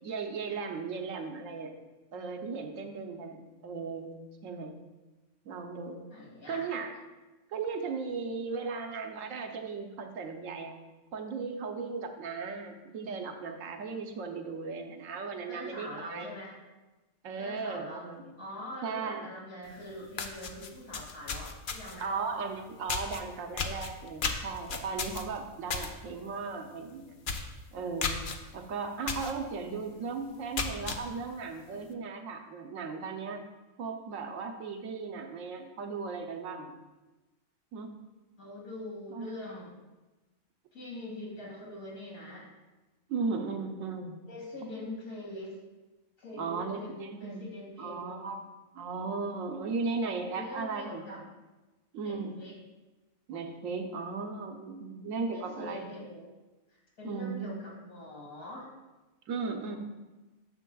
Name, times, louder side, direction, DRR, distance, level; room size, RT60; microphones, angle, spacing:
voice 1, 0.0-1.7 2.1-4.1 4.4-4.7 5.4-6.1 6.5-6.9 7.5-10.7 11.1-16.3 17.2-18.4 18.8-19.3 22.0-27.2 27.7-28.2 28.5-33.4 33.8-36.8 37.7-37.9 39.1-39.3 43.1-44.2 46.3-47.4 47.8-48.4 48.7-51.2 51.9-52.3 53.3-55.9 57.0-57.6 59.3-59.8, right 4 dB, 75° right, 4 dB, 1.1 m, -36 dB
voice 2, 6.1-6.7 15.5-16.6 17.4-18.1 18.4-22.1 38.4-39.8 40.7-42.5 44.3-45.5 46.2-48.2 50.3-51.2 52.0-52.6 55.3-56.3 56.7-58.7 59.7-59.8, left 1 dB, 75° left, -4 dB, 2.6 m, -43 dB
sound 1, 19.7-19.8 20.1-22.1 22.9-23.2 23.6-25.9 26.3-26.5 26.8-26.9 27.2-27.5 28.0-28.4 29.1-29.3 29.8-29.9 30.4-31.0, left 5 dB, 55° left, 0.6 m, -33 dB
9.8 x 7.2 x 2.3 m, 1.1 s
omnidirectional pair, 1.4 m